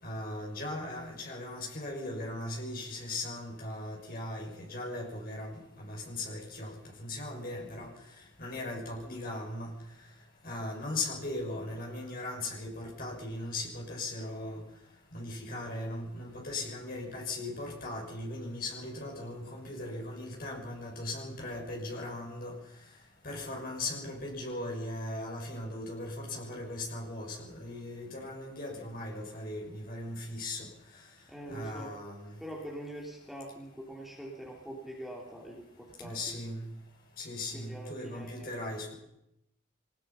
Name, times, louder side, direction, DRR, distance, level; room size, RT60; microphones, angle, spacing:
voice 1, 0.0-6.7 7.0-7.9 8.4-9.7 10.4-14.6 15.1-22.5 23.2-30.7 31.5-32.3 36.0-36.6 37.2-38.9, left 2 dB, 45° left, -1 dB, 6.5 m, -38 dB
voice 2, 31.3-31.9 32.4-36.4 37.5-38.6, right 1 dB, ahead, -2 dB, 3.2 m, -44 dB
24.0 x 19.5 x 5.7 m, 0.83 s
head